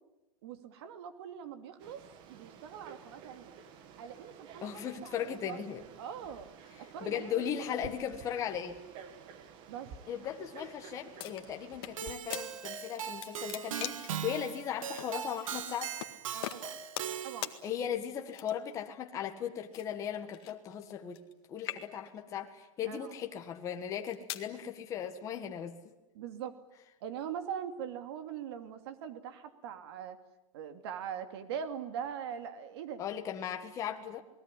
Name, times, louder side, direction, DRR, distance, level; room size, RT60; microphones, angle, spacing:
voice 1, 0.4-2.0 2.3-3.6 4.0-5.6 6.0-6.5 6.9-7.4 7.7-7.8 9.7-9.9 16.3-16.8 17.2-17.5 22.8-23.1 26.1-26.5 27.0-30.2 30.5-33.0, right 8 dB, 50° right, 9 dB, 2.7 m, -42 dB
Frog, 1.8-12.2, right 7 dB, 30° right, 1.8 m, -52 dB
voice 2, 4.6-5.8 6.8-8.8 10.1-15.9 17.6-21.2 21.5-25.8 33.0-34.2, left 9 dB, 20° left, 4 dB, 1.7 m, -37 dB
sound 1, 11.2-12.0 12.3-12.5 12.9-14.2 15.0-15.1 16.0-16.1 16.4-17.2 17.4-17.6 18.3-18.8 19.7-21.3 21.6-22.2 22.9-23.1 23.8-24.5, left 14 dB, 50° left, 1.9 m, -41 dB
Keyboard (musical), 12.0-17.6, right 9 dB, 80° right, 2.0 m, -39 dB
29.0 x 20.0 x 9.9 m, 0.96 s
supercardioid pair, 170°, 17 cm